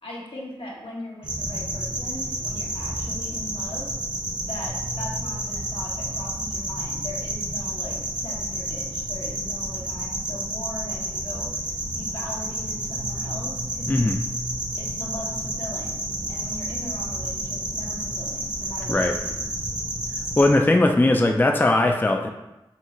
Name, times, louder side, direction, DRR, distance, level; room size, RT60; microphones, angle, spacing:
voice 1, 0.0-3.9 4.5-14.0 14.8-16.0 16.3-19.5, left 1 dB, 85° left, -4 dB, 1.0 m, -39 dB
sound 1, 1.2-20.5, right 1 dB, 50° right, 0.9 m, -30 dB
voice 2, 13.9-14.2 18.9-19.2 20.4-22.3, left 2 dB, 20° left, 3 dB, 0.3 m, -19 dB
5.5 x 2.4 x 3.0 m, 0.98 s
wide cardioid pair, 50°, 9 cm